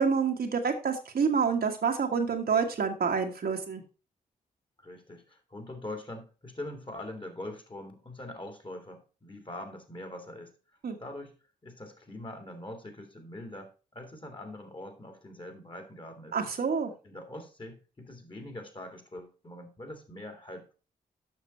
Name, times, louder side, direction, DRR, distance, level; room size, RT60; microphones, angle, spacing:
voice 1, 0.0-3.8 10.8-11.0 16.3-16.9, right 6 dB, 60° right, 3 dB, 1.4 m, -27 dB
voice 2, 4.8-10.5 11.0-11.3 11.6-16.4 17.0-20.7, left 1 dB, 30° left, 6 dB, 2.3 m, -43 dB
7.4 x 5.9 x 4.3 m, 0.32 s
supercardioid pair, 45°, 18 cm